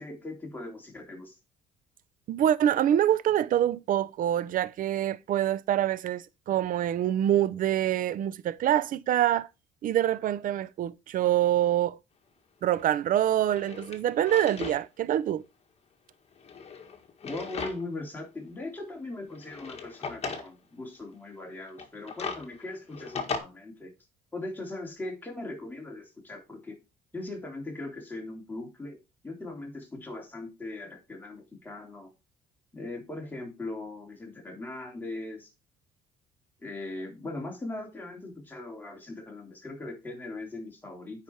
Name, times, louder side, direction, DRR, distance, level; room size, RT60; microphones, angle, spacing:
voice 1, 0.0-1.4 17.2-23.9 24.3-26.8 27.1-29.0 29.2-32.1 32.7-35.5 36.6-41.2, left 2 dB, 10° left, 3.4 m, -39 dB
voice 2, 2.3-9.5 9.8-12.0 12.6-15.4, right 11 dB, 55° right, 0.6 m, -25 dB
Drawer open or close, 12.8-12.9 13.4-14.8 15.2-15.3 16.3-18.0 18.4-18.5 19.3-20.5 21.7-23.4, left 5 dB, 40° left, 1.8 m, -37 dB
9.3 x 5.1 x 4.5 m
cardioid pair, 110°, 17 cm